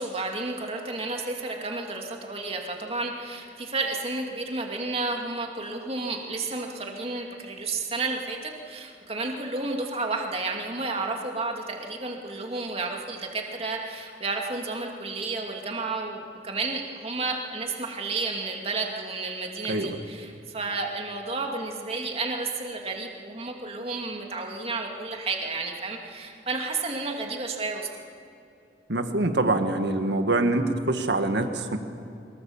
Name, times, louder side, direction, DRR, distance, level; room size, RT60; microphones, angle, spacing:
voice 1, 0.0-27.9, right 3 dB, 35° right, 1 dB, 2.5 m, -31 dB
voice 2, 28.9-31.8, right 2 dB, 75° right, 6 dB, 1.8 m, -25 dB
23.5 x 22.0 x 7.3 m, 2.7 s
head